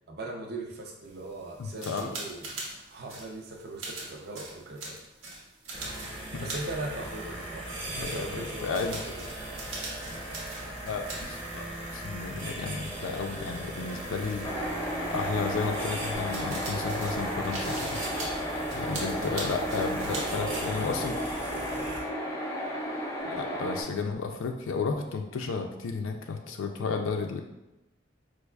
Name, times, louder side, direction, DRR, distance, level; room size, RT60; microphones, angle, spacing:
voice 1, 0.1-5.0 6.4-9.3 18.8-20.9, right 2 dB, 55° right, 1 dB, 0.5 m, -40 dB
sound 1, 1.1-7.7 8.0-11.3 11.6-11.7 13.4-13.5 16.1-20.6, right 2 dB, 85° right, 0.8 m, -41 dB
voice 2, 1.6-2.1 6.1-6.5 7.9-9.0 10.8-11.6 11.9-14.5 15.1-18.0 18.7-21.1 23.2-27.4, left 4 dB, 90° left, 4 dB, 0.4 m, -33 dB
sound 2, 5.7-22.0, right 1 dB, 30° right, 0.8 m, -38 dB
sound 3, 14.4-23.8, equal, 15° left, 0.4 m, -33 dB
4.6 x 2.4 x 2.2 m, 0.97 s
head